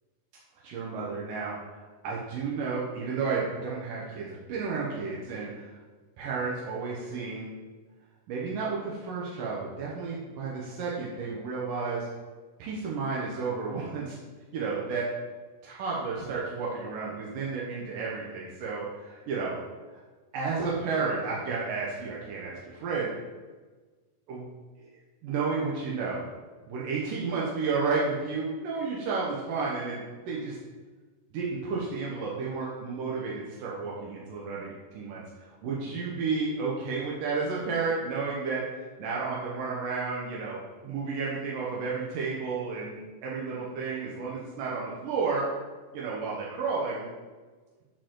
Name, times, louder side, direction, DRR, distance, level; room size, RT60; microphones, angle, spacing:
voice 1, 0.6-5.7 6.2-7.6 8.3-12.1 12.6-14.2 14.5-15.1 15.6-19.5 20.3-23.1 24.3-24.5 25.2-26.2 26.7-30.6 31.3-45.5 45.9-47.1, right 4 dB, 80° right, -5 dB, 2.9 m, -32 dB
13.0 x 5.3 x 3.8 m, 1.3 s
omnidirectional pair, 3.8 m